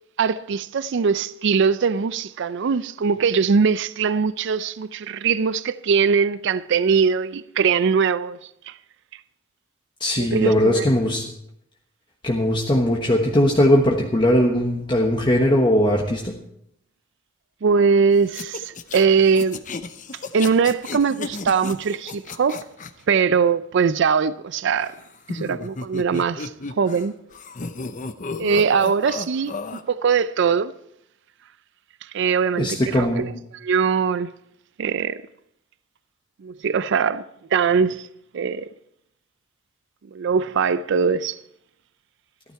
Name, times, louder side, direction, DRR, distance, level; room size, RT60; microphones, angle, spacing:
voice 1, 0.2-8.4 8.7-8.8 10.2-10.9 17.6-19.6 20.3-22.6 23.1-24.9 25.3-26.5 26.8-27.1 28.4-30.7 32.1-34.3 34.8-35.2 36.4-37.2 37.5-38.1 38.3-38.7 40.1-41.4, right 5 dB, 60° right, 0.4 m, -21 dB
voice 2, 10.0-11.2 12.2-16.3 32.6-33.3, left 1 dB, 25° left, 1.2 m, -19 dB
sound 1, 18.3-22.9 24.8-27.1 27.3-29.8, left 3 dB, 40° left, 0.7 m, -34 dB
14.5 x 12.5 x 4.5 m
head